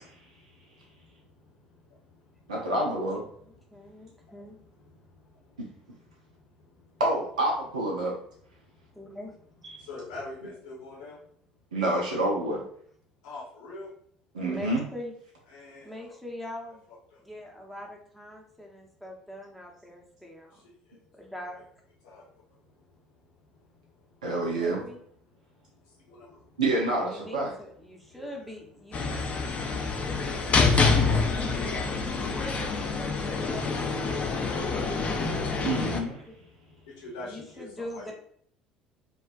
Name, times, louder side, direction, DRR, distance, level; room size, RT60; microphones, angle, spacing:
voice 1, 0.0-2.7 3.3-7.0 8.1-11.3 13.2-13.9 15.5-16.2 16.9-17.3 20.5-21.0 21.4-21.6 22.0-24.4 25.2-26.6 27.9-38.1, left 2 dB, 70° left, -6 dB, 0.8 m, -49 dB
voice 2, 2.5-3.2 7.0-8.1 9.6-9.8 11.7-12.6 14.3-14.8 24.2-24.8 26.6-27.5 35.6-36.2, right 2 dB, 80° right, -2 dB, 0.4 m, -28 dB
voice 3, 3.4-4.6 8.9-9.3 12.5-12.6 14.5-15.1 15.8-16.8 17.2-20.6 21.2-21.6 24.5-25.0 27.1-29.2 30.5-34.3 36.3-36.4 37.2-38.1, left 1 dB, ahead, -1 dB, 0.7 m, -42 dB
sound 1, 28.9-36.0, left 4 dB, 35° left, 0.4 m, -26 dB
2.4 x 2.2 x 2.3 m, 0.63 s
figure-of-eight pair, 60°, 4 cm